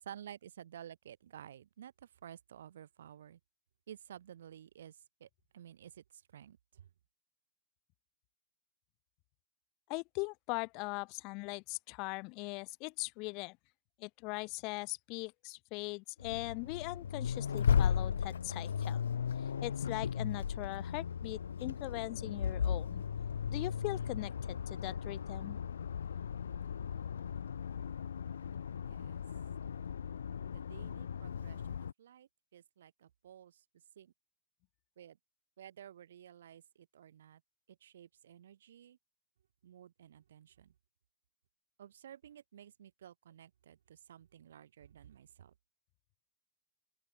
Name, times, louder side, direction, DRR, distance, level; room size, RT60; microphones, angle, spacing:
voice 1, 0.0-3.4 3.9-6.9 28.9-29.2 30.5-33.6 34.0-34.1 35.0-35.2 35.6-37.4 37.7-39.0 39.6-40.7 41.8-45.5, right 10 dB, 65° right, 5.9 m, -53 dB
voice 2, 9.9-13.6 14.0-19.0 19.4-23.0 23.5-25.6, left 28 dB, 40° left, 2.8 m, -40 dB
Accelerating revving vroom, 16.2-31.9, left 7 dB, 70° left, 0.5 m, -36 dB
open air
figure-of-eight pair, 100°, 0 cm